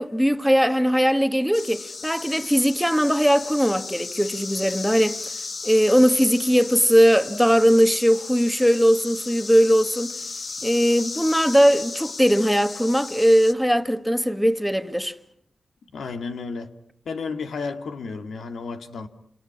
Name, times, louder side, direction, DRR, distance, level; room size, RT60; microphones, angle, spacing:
voice 1, 0.0-5.2 5.6-10.1 10.6-15.1, equal, ahead, 1.5 m, -19 dB
sound 1, 1.5-13.5, left 4 dB, 45° left, 1.2 m, -35 dB
voice 2, 15.9-16.7 17.1-19.1, left 4 dB, 90° left, 2.2 m, -32 dB
29.5 x 27.5 x 6.1 m
wide cardioid pair, 115°, 0 cm